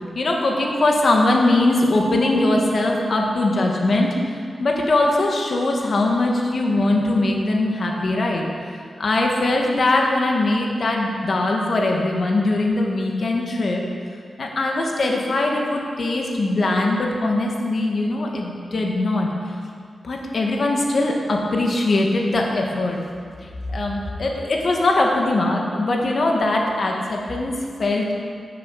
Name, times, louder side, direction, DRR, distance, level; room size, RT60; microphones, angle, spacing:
voice 1, 0.1-4.1 4.6-8.5 9.0-13.8 14.4-19.3 20.0-23.0 23.7-28.1, left 2 dB, 60° left, 0 dB, 1.7 m, -21 dB
9.8 x 7.1 x 7.7 m, 2.2 s
wide cardioid pair, 80°, 0 cm